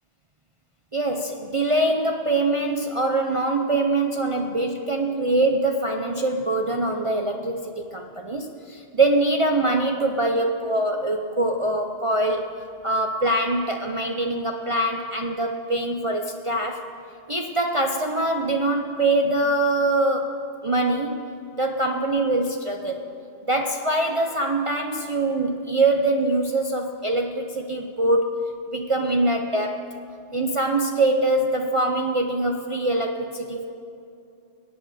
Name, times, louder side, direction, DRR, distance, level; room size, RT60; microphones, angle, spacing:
voice 1, 0.9-12.5 12.8-16.8 17.3-20.4 20.6-21.3 21.6-23.1 23.5-28.3 28.7-29.8 30.3-33.6, right 2 dB, 35° right, 2 dB, 0.7 m, -23 dB
21.0 x 8.7 x 4.9 m, 2.6 s
omnidirectional pair, 1.1 m